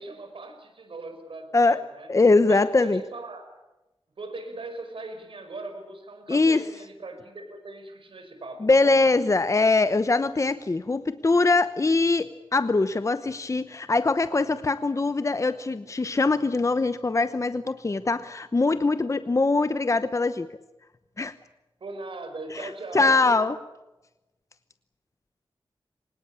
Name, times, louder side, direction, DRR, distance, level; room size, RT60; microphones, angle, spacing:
voice 1, 0.0-2.1 2.5-3.5 4.2-9.0 21.8-23.5, right 2 dB, 75° right, 6 dB, 5.5 m, -39 dB
voice 2, 2.1-3.0 6.3-6.6 8.6-20.5 21.2-21.3 22.5-23.6, left 3 dB, 35° left, 12 dB, 0.9 m, -22 dB
24.0 x 20.5 x 8.7 m, 1.0 s
wide cardioid pair, 90°, 9 cm